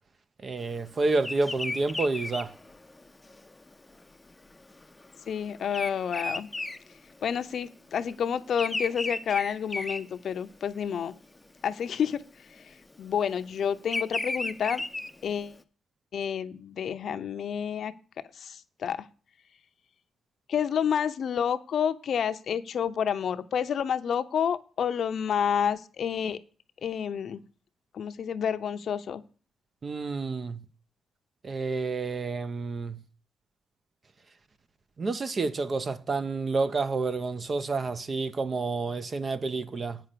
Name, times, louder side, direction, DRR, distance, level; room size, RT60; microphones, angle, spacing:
voice 1, 0.4-2.5 29.8-30.6 31.4-33.0 35.0-40.0, right 3 dB, 35° right, 0.8 m, -29 dB
Bird vocalization bird call bird song, 1.2-7.6 7.9-10.8 11.2-11.6 12.6-15.5, left 2 dB, 15° left, 0.7 m, -35 dB
voice 2, 5.3-6.5 7.2-11.2 11.6-12.2 12.5-14.8 15.2-15.6 16.1-17.9 18.3-19.1 20.5-26.4 26.8-27.4 27.9-29.2, left 8 dB, 60° left, 0.7 m, -29 dB
8.9 x 5.9 x 6.7 m
cardioid pair, 125°, 0 cm